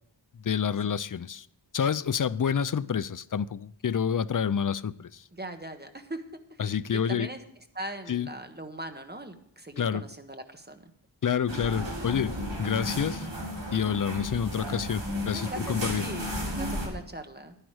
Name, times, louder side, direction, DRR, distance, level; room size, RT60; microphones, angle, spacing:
voice 1, 0.4-1.5 1.7-5.2 6.6-7.3 8.1-8.3 9.8-10.1 11.2-13.3 13.7-16.1, left 7 dB, 50° left, 0.5 m, -28 dB
voice 2, 5.4-6.2 6.9-7.4 7.7-10.8 15.3-17.6, right 1 dB, 20° right, 1.3 m, -40 dB
sound 1, 11.5-16.9, equal, 85° right, 4.2 m, -34 dB
11.0 x 10.5 x 4.7 m
wide cardioid pair, 55°, 43 cm